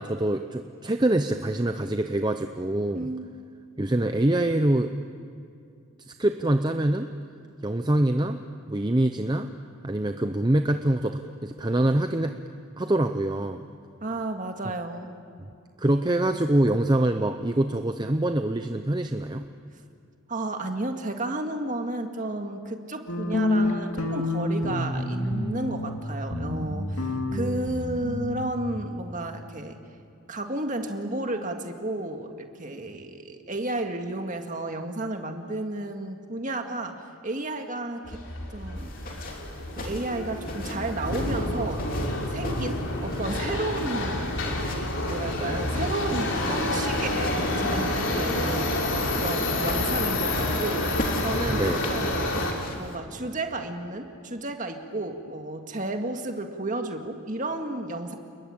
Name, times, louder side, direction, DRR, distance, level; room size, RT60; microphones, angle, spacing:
voice 1, 0.0-3.1 3.8-4.9 6.1-7.1 7.6-8.4 8.7-9.5 9.8-12.3 12.8-13.6 15.8-19.5 51.5-51.8, right 1 dB, 20° right, 7 dB, 0.7 m, -25 dB
voice 2, 2.9-3.3 14.0-15.1 20.3-29.8 30.3-38.2 38.5-38.9 39.8-41.9 42.3-44.3 45.0-48.7 49.1-52.5 52.8-58.2, right 2 dB, 35° right, 4 dB, 2.0 m, -32 dB
sound 1, 23.1-26.0 26.3-28.5, left 1 dB, 85° left, 2.6 m, -28 dB
Subway metro underground, 38.1-52.5, left 1 dB, 60° left, 3.9 m, -28 dB
sound 2, 38.8-53.0, left 1 dB, 40° left, 3.2 m, -39 dB
29.0 x 21.5 x 8.8 m, 2.4 s
head